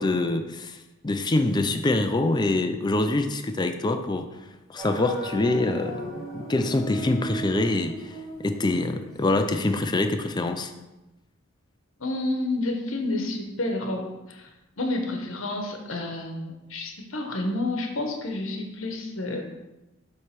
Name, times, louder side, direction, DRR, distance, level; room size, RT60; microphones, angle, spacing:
voice 1, 0.0-4.3 4.7-10.7, left 2 dB, 20° left, 7 dB, 0.4 m, -25 dB
sound 1, 4.8-9.6, right 1 dB, ahead, 1.8 m, -37 dB
voice 2, 12.0-14.5 14.8-19.5, left 2 dB, 75° left, 3 dB, 1.1 m, -30 dB
7.6 x 3.3 x 5.8 m, 1.0 s
head